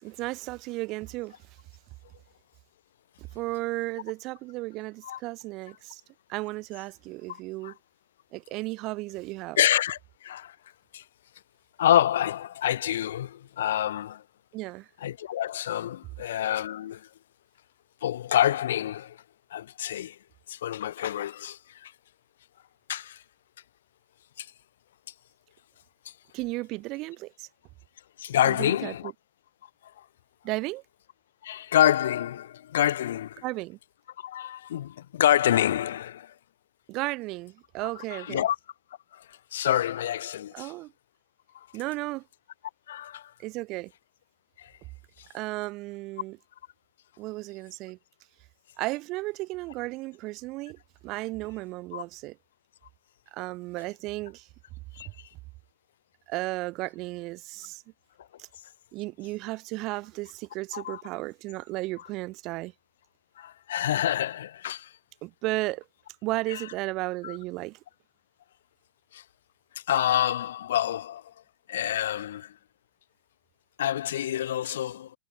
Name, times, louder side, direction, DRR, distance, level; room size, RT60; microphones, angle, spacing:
voice 1, 0.0-1.4 3.2-6.0 6.3-7.8 8.3-9.6 14.5-14.9 26.3-27.5 28.4-29.1 30.4-30.8 33.4-33.8 36.9-38.5 40.5-40.9 41.7-42.2 43.4-43.9 45.3-46.4 47.2-48.0 48.8-52.4 53.3-54.5 56.3-57.8 58.4-58.5 58.9-62.7 65.2-65.8 66.2-67.8, right 21 dB, 25° right, 0.9 m, -34 dB
voice 2, 7.3-7.7 9.6-10.6 10.9-11.0 11.8-14.2 15.0-17.1 18.0-19.2 19.5-20.2 20.5-21.9 22.9-23.2 24.4-24.5 28.2-29.1 30.0-30.1 31.4-33.4 34.2-36.3 38.1-38.6 39.1-40.7 41.5-41.7 42.9-43.3 44.6-44.7 51.9-52.0 54.9-55.1 60.7-61.0 63.4-64.9 66.5-66.6 67.2-67.4 69.1-69.2 69.9-71.3 71.7-72.5 73.8-75.2, left 11 dB, 70° left, 0.4 m, -27 dB
supercardioid pair, 175°, 0 cm